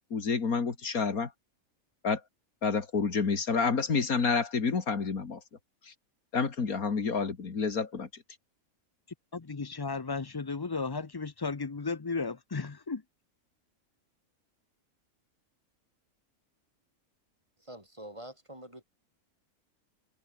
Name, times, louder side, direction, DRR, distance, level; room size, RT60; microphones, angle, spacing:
voice 1, 0.1-1.3 2.0-2.2 2.6-5.4 5.9-6.0 6.3-8.1, left 5 dB, 80° left, 2.7 m, -29 dB
voice 2, 9.3-13.0, left 4 dB, 30° left, 0.4 m, -34 dB
voice 3, 17.6-18.8, right 1 dB, 20° right, 4.6 m, -46 dB
omnidirectional pair, 1.5 m